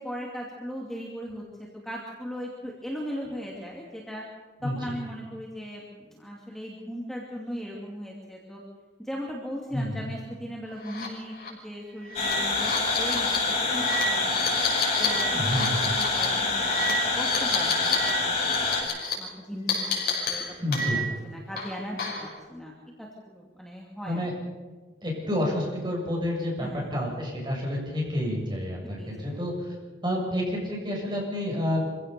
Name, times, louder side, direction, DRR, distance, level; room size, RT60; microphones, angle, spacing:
voice 1, 0.0-4.2 4.6-8.6 9.0-12.7 13.0-14.4 15.0-15.3 15.6-22.7 23.0-24.3 26.6-27.0 29.0-29.4, equal, ahead, -3 dB, 2.7 m, -38 dB
voice 2, 9.7-10.0 15.3-15.8 20.6-21.0 24.0-24.3 25.0-29.7 30.0-31.8, left 1 dB, 25° right, -2 dB, 7.4 m, -29 dB
sound 1, 10.8-11.1 11.4-11.5 12.0-18.1 18.4-19.1 19.7-21.2 21.6-22.3, left 4 dB, 55° left, 5.8 m, -30 dB
sound 2, 12.1-18.8, left 3 dB, 40° left, 6.4 m, -26 dB
25.5 x 16.5 x 6.9 m, 1.4 s
head